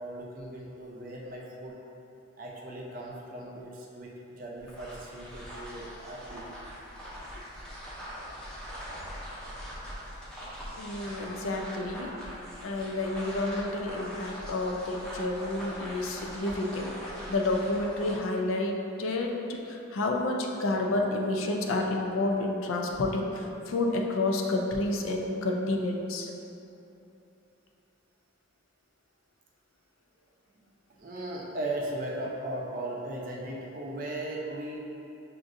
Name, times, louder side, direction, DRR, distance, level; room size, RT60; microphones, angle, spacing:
voice 1, 0.0-1.8 2.4-6.5 31.0-34.8, right 1 dB, 40° right, -3 dB, 0.5 m, -37 dB
sound 1, 4.6-18.3, equal, 5° left, 0.6 m, -42 dB
voice 2, 10.8-12.1 12.6-16.9 17.3-26.3, left 2 dB, 80° left, 1 dB, 0.4 m, -30 dB
5.9 x 2.5 x 2.5 m, 2.9 s
head